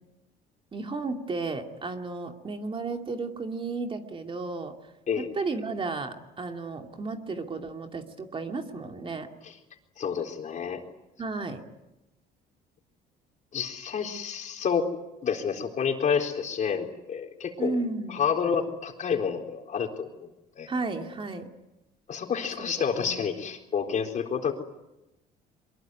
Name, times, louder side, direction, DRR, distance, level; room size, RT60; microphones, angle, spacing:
voice 1, 0.7-4.8 5.2-9.3 11.2-11.6 17.6-18.2 20.7-21.5 22.6-22.7 23.0-23.2, right 3 dB, 30° right, 4 dB, 2.6 m, -33 dB
voice 2, 10.0-10.8 13.5-14.9 15.2-17.8 18.1-20.1 20.6-20.7 22.1-24.5, left 6 dB, 45° left, 3 dB, 4.1 m, -29 dB
23.5 x 21.5 x 9.5 m, 0.94 s
cardioid pair, 110°, 17 cm